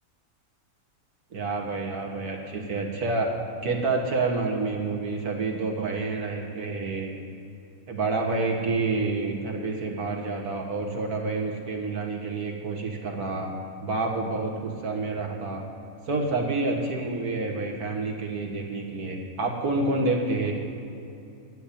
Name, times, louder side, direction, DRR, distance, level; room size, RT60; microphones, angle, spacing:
voice 1, 1.3-3.3 3.6-7.1 7.9-13.5 13.8-15.6 16.1-20.5, right 3 dB, 85° right, 1 dB, 2.1 m, -28 dB
10.5 x 8.4 x 8.6 m, 2.7 s
omnidirectional pair, 1.6 m